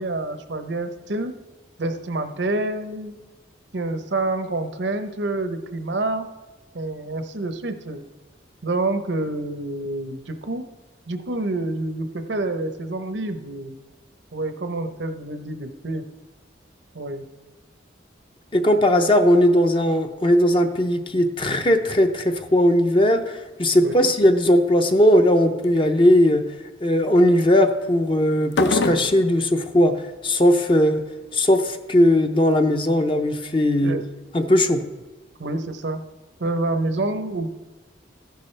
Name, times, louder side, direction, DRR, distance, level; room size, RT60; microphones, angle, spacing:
voice 1, 0.0-1.4 1.8-3.2 3.7-6.3 6.7-8.0 8.6-10.7 11.1-13.7 14.3-16.0 16.9-17.3 23.8-24.1 33.8-34.1 35.4-36.0 36.4-37.5, right 2 dB, 75° right, 8 dB, 0.8 m, -27 dB
voice 2, 18.5-26.4 26.8-31.0 31.3-34.0 34.3-34.8, left 1 dB, 25° left, 6 dB, 0.6 m, -18 dB
sound 1, 23.0-23.4 23.7-24.2 24.8-25.2 25.6-25.9 28.5-29.3, left 3 dB, 70° left, 0.6 m, -25 dB
14.5 x 10.5 x 3.3 m, 1.2 s
head